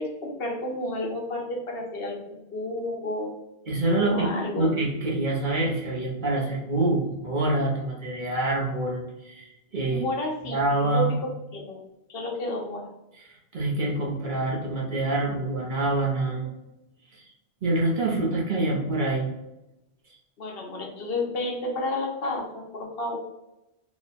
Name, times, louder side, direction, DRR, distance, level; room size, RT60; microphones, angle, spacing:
voice 1, 0.0-3.3 4.0-4.7 9.9-11.8 12.1-12.9 20.4-23.2, left 1 dB, 65° left, 0 dB, 0.9 m, -31 dB
voice 2, 3.7-10.0 10.5-11.2 13.2-16.5 17.2-17.3 17.6-19.3, right 2 dB, 55° right, -2 dB, 0.9 m, -26 dB
3.0 x 2.2 x 4.0 m, 0.92 s
omnidirectional pair, 1.1 m